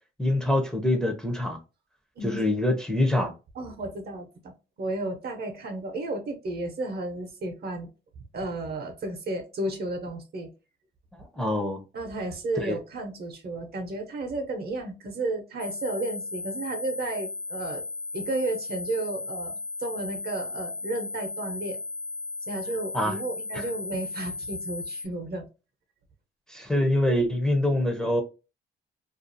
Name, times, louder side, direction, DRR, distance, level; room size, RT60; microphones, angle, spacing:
voice 1, 0.2-1.6 2.2-3.3 11.1-11.8 12.6-12.8 22.9-23.2 23.5-23.6 26.5-28.2, left 1 dB, 5° left, 0.6 m, -25 dB
voice 2, 3.5-4.5 4.8-7.9 8.3-10.5 11.9-17.8 18.1-21.8 22.5-25.5 27.1-27.2, right 2 dB, 55° right, 0.7 m, -33 dB
sound 1, 15.6-25.1, left 3 dB, 50° left, 0.7 m, -36 dB
2.5 x 2.3 x 2.6 m
cardioid pair, 90°, 20 cm